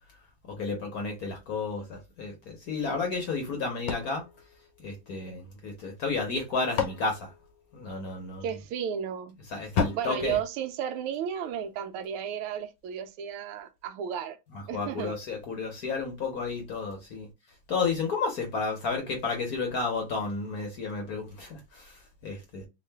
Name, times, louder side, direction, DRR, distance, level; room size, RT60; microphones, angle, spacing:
voice 1, 0.5-4.2 4.8-7.3 7.7-8.4 9.5-10.4 14.5-17.3 17.7-22.6, left 4 dB, 55° left, 1.1 m, -32 dB
sound 1, 3.9-5.4 6.3-8.2 9.7-11.4, left 6 dB, 75° left, 1.5 m, -35 dB
voice 2, 8.4-9.4 9.9-14.4 14.7-15.2, right 8 dB, 85° right, 1.5 m, -33 dB
3.6 x 2.4 x 3.3 m
omnidirectional pair, 2.4 m